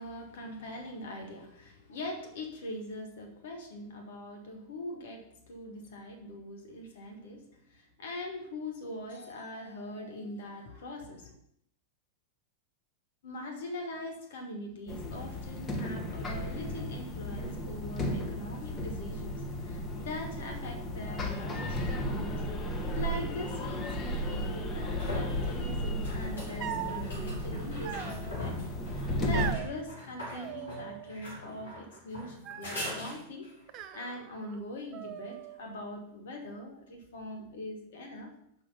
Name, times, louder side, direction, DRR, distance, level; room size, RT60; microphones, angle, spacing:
voice 1, 0.0-11.3 13.2-22.4 22.9-33.5 33.7-38.3, left 1 dB, 60° left, 4 dB, 1.9 m, -42 dB
sound 1, 14.9-29.5, equal, 20° left, 1.4 m, -34 dB
sound 2, 24.5-33.6 37.0-37.1, left 1 dB, 75° left, 3.7 m, -42 dB
sound 3, 26.6-27.0 27.8-28.5 29.3-29.7 30.3-31.2 31.4-32.0 32.4-33.0 33.7-34.6 34.9-35.7, right 10 dB, 40° right, 0.5 m, -40 dB
6.4 x 5.5 x 5.7 m, 0.70 s
figure-of-eight pair, 90°, 0 cm